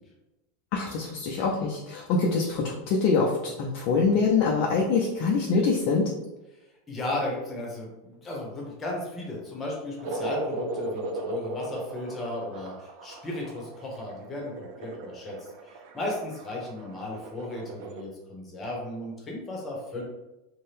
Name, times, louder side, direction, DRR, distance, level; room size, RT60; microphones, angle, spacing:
voice 1, 0.7-6.1, left 4 dB, 55° left, -2 dB, 0.5 m, -24 dB
voice 2, 6.9-14.5 14.8-20.0, left 1 dB, 25° left, -2 dB, 1.0 m, -35 dB
sound 1, 10.0-18.0, right 2 dB, 65° right, 0.5 m, -37 dB
2.7 x 2.2 x 3.3 m, 1.0 s
supercardioid pair, 120°, 0 cm